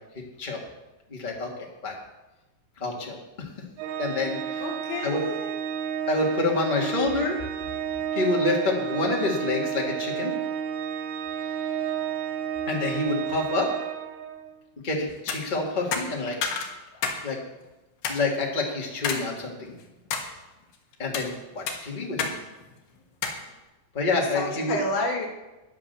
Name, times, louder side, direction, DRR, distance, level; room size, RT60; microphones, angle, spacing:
voice 1, 1.1-1.5 1.8-1.9 2.8-3.5 4.0-4.6 5.0-5.2 6.1-7.4 8.1-10.3 12.7-13.7 14.8-16.4 17.2-17.4 18.1-19.7 21.0-22.3 23.9-24.8, left 3 dB, 25° left, -1 dB, 1.1 m, -27 dB
Organ, 3.8-14.6, right 9 dB, 85° right, 2.9 m, -31 dB
voice 2, 4.6-5.5 24.2-25.3, left 2 dB, 55° left, 0 dB, 3.2 m, -30 dB
sound 1, 15.1-15.4 15.9-17.2 17.5-17.6 18.0-18.2 19.0-19.2 19.7-20.3 20.9-21.3 21.7-22.4 22.6-22.7 23.2-23.4, left 6 dB, 75° left, 3.2 m, -29 dB
11.0 x 9.9 x 6.9 m, 1.1 s
omnidirectional pair, 4.5 m